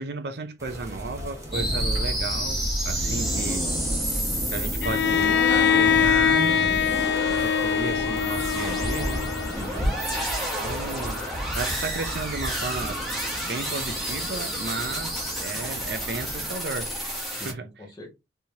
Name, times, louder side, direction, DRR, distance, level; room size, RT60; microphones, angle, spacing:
voice 1, 0.0-3.8 4.5-7.0 7.3-9.3 10.5-11.3 11.5-13.0 13.4-17.7, right 3 dB, 60° right, 0.6 m, -34 dB
sound 1, 0.6-16.6, equal, 15° right, 1.2 m, -37 dB
sound 2, 1.5-17.5, equal, ahead, 1.6 m, -30 dB
voice 2, 3.0-3.4 9.4-10.0 17.3-18.1, left 1 dB, 20° left, 1.8 m, -41 dB
Bowed string instrument, 4.8-9.8, left 8 dB, 65° left, 0.4 m, -23 dB
4.5 x 3.3 x 2.8 m
head